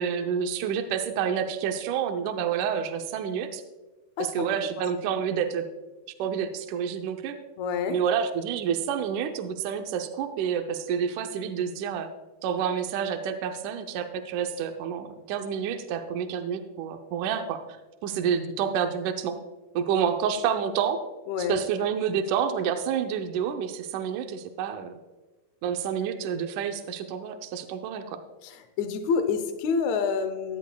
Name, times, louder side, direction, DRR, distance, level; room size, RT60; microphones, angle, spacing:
voice 1, 0.0-3.6 4.2-5.7 6.2-7.4 7.9-12.1 12.4-17.6 18.0-19.4 19.8-21.0 21.4-25.0 25.6-28.2, right 8 dB, 80° right, 6 dB, 1.9 m, -28 dB
voice 2, 7.6-8.0 21.3-21.6 28.4-30.6, left 6 dB, 90° left, 9 dB, 1.6 m, -28 dB
15.0 x 11.5 x 2.2 m, 1.2 s
omnidirectional pair, 4.2 m